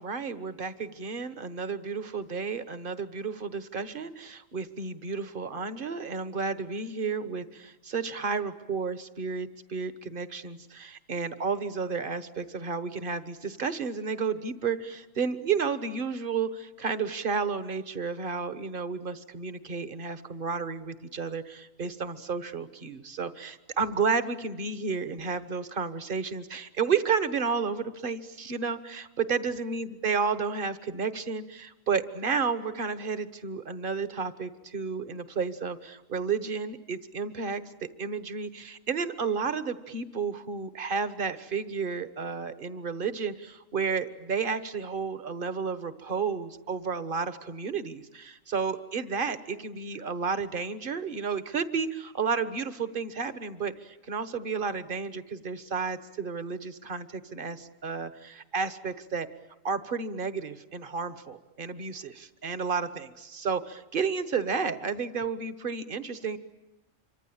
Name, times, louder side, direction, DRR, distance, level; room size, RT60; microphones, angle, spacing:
voice 1, 0.0-37.6 38.0-59.3 59.6-66.4, right 5 dB, 45° right, 12 dB, 1.5 m, -32 dB
27.0 x 24.5 x 8.8 m, 0.96 s
omnidirectional pair, 1.3 m